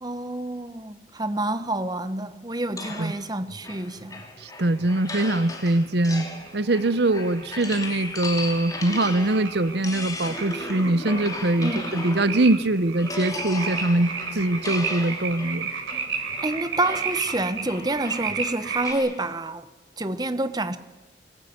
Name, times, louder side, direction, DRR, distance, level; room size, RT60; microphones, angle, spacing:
voice 1, 0.0-4.2 11.6-11.9 16.4-19.6 20.0-20.8, right 2 dB, 20° right, 1.0 m, -28 dB
sound 1, 2.8-12.6 13.0-19.2, left 2 dB, 20° left, 2.8 m, -36 dB
voice 2, 4.4-6.3 6.5-15.7, right 2 dB, 55° right, 0.8 m, -23 dB
sound 2, 5.2-18.9, right 5 dB, 90° right, 4.0 m, -34 dB
24.5 x 19.5 x 9.5 m
head